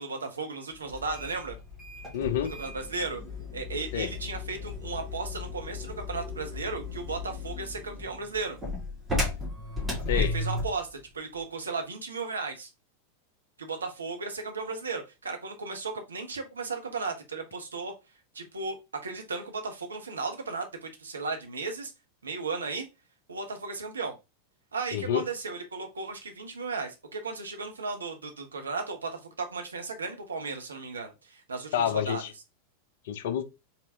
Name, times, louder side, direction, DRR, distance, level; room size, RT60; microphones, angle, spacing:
voice 1, 0.0-1.6 2.6-3.2 3.5-8.6 10.1-12.7 13.6-17.9 18.3-18.8 19.0-21.9 22.2-22.9 23.3-24.1 24.7-32.3, right 4 dB, 75° right, 1.0 m, -35 dB
sound 1, 0.9-10.8, left 2 dB, 15° right, 2.1 m, -35 dB
voice 2, 2.1-2.5 3.9-4.1 10.1-10.3 24.9-25.2 31.7-32.3 33.1-33.4, left 10 dB, 55° left, 0.6 m, -28 dB
4.2 x 3.7 x 2.7 m
figure-of-eight pair, 90°, 0 cm